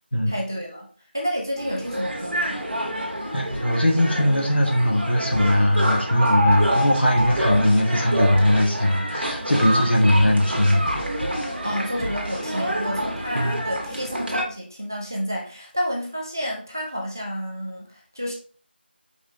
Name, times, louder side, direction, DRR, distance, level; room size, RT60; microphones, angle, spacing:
voice 1, 0.3-0.9 1.1-2.6 11.5-18.3, equal, 20° right, -1 dB, 0.4 m, -30 dB
sound 1, 1.6-14.4, equal, 65° right, 1.2 m, -27 dB
voice 2, 3.3-10.8 13.3-13.6, left 1 dB, 65° left, 0 dB, 1.3 m, -20 dB
sound 2, 5.3-7.9 8.3-8.8 9.1-11.6 12.0-12.5, right 1 dB, ahead, 0.8 m, -35 dB
4.8 x 3.0 x 2.5 m, 0.41 s
figure-of-eight pair, 175°, 6 cm